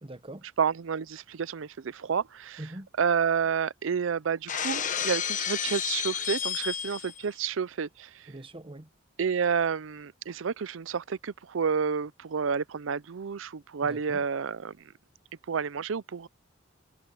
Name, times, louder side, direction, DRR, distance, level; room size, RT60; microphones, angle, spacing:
voice 1, 0.0-0.4 2.6-2.9 8.3-8.9 13.8-14.2, right 1 dB, 30° right, 1.2 m, -42 dB
voice 2, 0.6-2.6 3.0-8.3 9.2-14.9 15.5-16.3, right 6 dB, 75° right, 0.5 m, -30 dB
Shatter, 4.5-7.2, left 8 dB, 40° left, 1.1 m, -31 dB
head